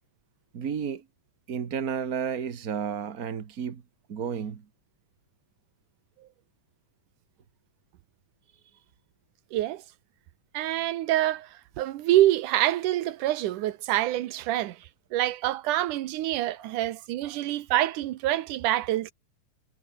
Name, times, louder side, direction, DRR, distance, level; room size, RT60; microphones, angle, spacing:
voice 1, 0.5-1.0 1.5-3.8 4.1-4.6 16.6-16.7 17.2-17.4, right 7 dB, 50° right, 1.0 m, -32 dB
voice 2, 9.5-9.8 10.5-11.5 11.8-14.8 15.1-19.1, right 14 dB, 75° right, 2.5 m, -26 dB
omnidirectional pair, 3.7 m